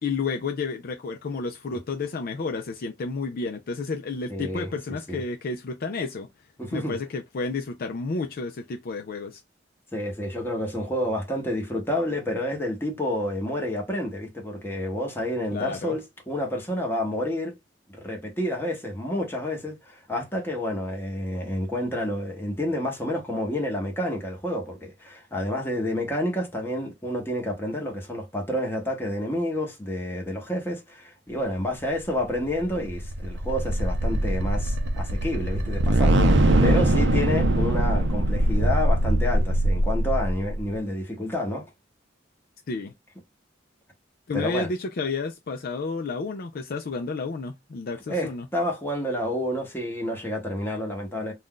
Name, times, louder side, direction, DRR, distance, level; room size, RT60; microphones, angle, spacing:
voice 1, 0.0-6.3 6.7-9.4 15.5-16.0 42.7-42.9 44.3-48.5, left 4 dB, 50° left, 0.4 m, -31 dB
voice 2, 4.3-4.8 5.1-5.2 6.6-7.0 9.9-17.5 17.9-36.2 36.6-41.7 44.3-44.7 48.1-51.3, left 1 dB, 10° left, 0.9 m, -29 dB
sound 1, 32.3-40.7, right 1 dB, 65° right, 0.6 m, -22 dB
2.5 x 2.3 x 3.7 m
head